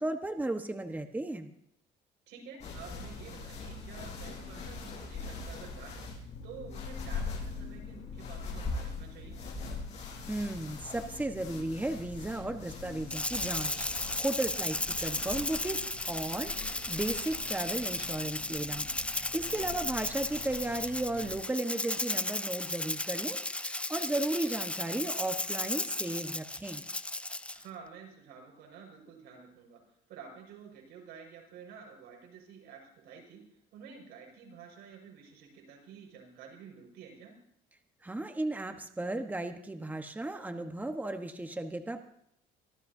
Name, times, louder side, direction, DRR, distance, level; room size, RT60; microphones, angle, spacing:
voice 1, 0.0-1.5 10.3-26.8 38.0-42.0, right 2 dB, 10° right, 6 dB, 1.2 m, -35 dB
voice 2, 2.3-9.4 19.4-19.7 27.5-37.4, right 6 dB, 85° right, 1 dB, 5.6 m, -50 dB
sound 1, 2.6-21.4, left 4 dB, 45° left, 5.7 m, -42 dB
Rattle (instrument), 13.1-27.6, left 2 dB, 5° left, 0.5 m, -35 dB
24.5 x 14.5 x 2.8 m, 0.73 s
cardioid pair, 110°, 17 cm